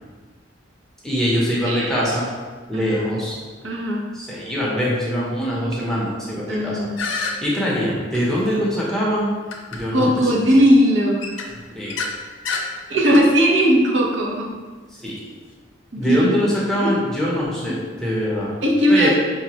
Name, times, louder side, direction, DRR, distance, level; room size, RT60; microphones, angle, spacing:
voice 1, 1.0-2.3 2.7-3.4 4.1-6.9 7.4-9.3 9.7-10.5 11.8-11.9 14.9-15.2 16.0-18.5 18.9-19.1, equal, ahead, -7 dB, 0.7 m, -23 dB
voice 2, 2.7-3.1 3.6-4.0 6.5-7.0 9.9-11.2 12.9-14.4 15.9-16.0 16.7-16.9 18.6-19.1, equal, 70° right, -2 dB, 0.7 m, -18 dB
sound 1, 7.0-7.3 8.1-8.2 9.5-9.8 10.2-10.4 11.2-12.1 12.5-12.7 13.0-13.2, left 4 dB, 85° left, 0.5 m, -28 dB
4.9 x 2.1 x 2.9 m, 1.4 s
head